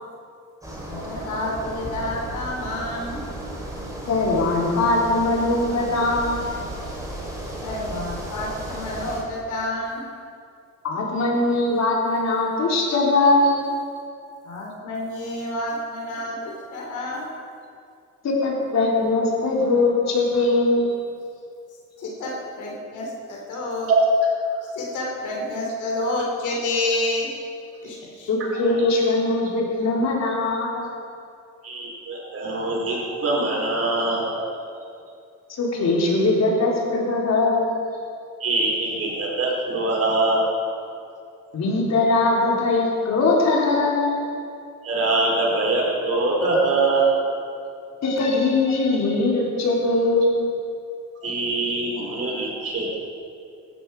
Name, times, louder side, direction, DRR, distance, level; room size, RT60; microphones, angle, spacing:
sound 1, 0.6-9.2, right 1 dB, 10° right, 4.4 m, -34 dB
voice 1, 0.9-3.3 7.6-10.1 14.4-17.3 22.0-23.9 24.7-27.3 27.8-28.3, left 1 dB, 80° left, -2 dB, 3.6 m, -29 dB
voice 2, 4.1-6.6 10.8-13.6 18.2-20.9 28.3-30.9 35.5-37.7 41.5-44.1 48.0-50.4, left 2 dB, 60° left, -2 dB, 4.0 m, -21 dB
voice 3, 31.6-34.4 38.4-40.5 44.8-47.1 51.2-53.0, right 2 dB, 50° right, -2 dB, 4.9 m, -23 dB
17.5 x 13.0 x 4.9 m, 2.4 s
cardioid pair, 90°, 30 cm